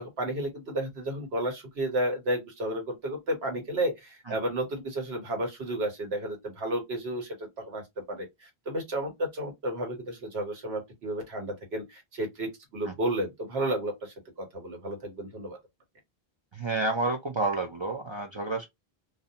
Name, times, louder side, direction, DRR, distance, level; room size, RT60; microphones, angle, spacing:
voice 1, 0.0-7.8 8.1-15.6, right 1 dB, 85° right, 1.3 m, -32 dB
voice 2, 16.5-18.7, right 3 dB, 50° right, 0.3 m, -30 dB
2.7 x 2.0 x 2.6 m
omnidirectional pair, 1.0 m